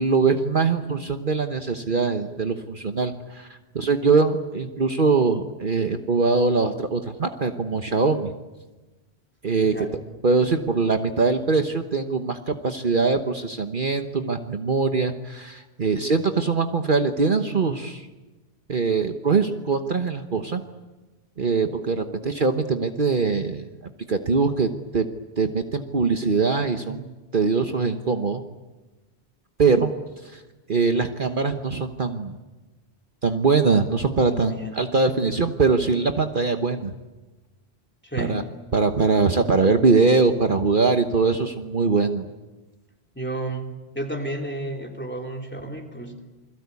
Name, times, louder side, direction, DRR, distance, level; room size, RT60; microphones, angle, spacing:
voice 1, 0.0-8.3 9.4-9.7 10.2-18.1 18.7-20.6 21.4-23.7 24.1-25.1 25.4-28.4 29.6-29.9 30.2-30.4 30.7-32.3 33.2-36.9 38.2-38.4 38.7-42.2, right 4 dB, 50° right, 6 dB, 1.3 m, -22 dB
voice 2, 9.6-9.9 34.4-34.9 38.0-38.4 43.2-43.7 43.9-46.2, right 1 dB, 10° left, 2 dB, 3.5 m, -32 dB
28.5 x 22.0 x 8.4 m, 1.1 s
omnidirectional pair, 1.1 m